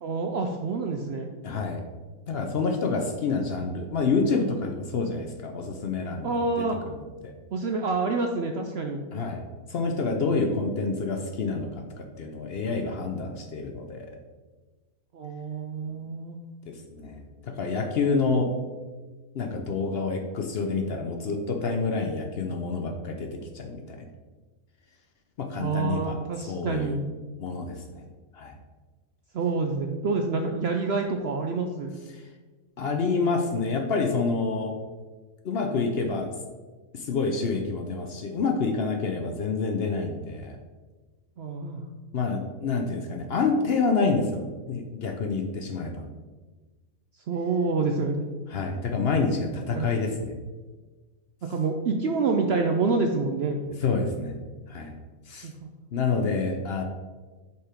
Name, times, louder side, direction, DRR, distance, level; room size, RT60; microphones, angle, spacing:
voice 1, 0.0-1.3 6.2-6.8 7.5-9.0 15.1-16.4 25.6-27.0 29.3-31.9 41.4-41.8 47.3-48.3 49.7-49.9 51.5-53.6 55.4-55.7, right 4 dB, 65° right, 3 dB, 0.6 m, -27 dB
voice 2, 1.4-1.8 2.3-7.0 7.2-7.3 9.1-9.4 9.7-14.1 16.7-18.5 19.3-24.1 25.4-26.2 26.4-27.0 27.4-28.1 28.3-28.6 32.1-32.2 32.8-34.7 35.4-36.3 36.9-40.6 42.1-46.1 48.5-50.3 53.8-54.4 54.7-55.0 55.3-55.5 55.9-56.8, left 4 dB, 55° left, 4 dB, 0.7 m, -28 dB
5.5 x 4.6 x 5.0 m, 1.3 s
omnidirectional pair, 1.5 m